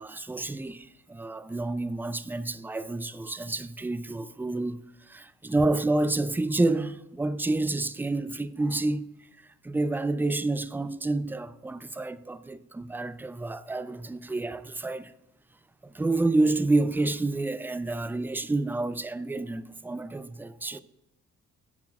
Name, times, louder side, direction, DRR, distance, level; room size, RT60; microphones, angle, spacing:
voice 1, 0.0-9.1 9.6-15.1 15.8-20.8, right 2 dB, 5° right, 0.3 m, -29 dB
8.7 x 4.3 x 4.2 m
cardioid pair, 90°, 30 cm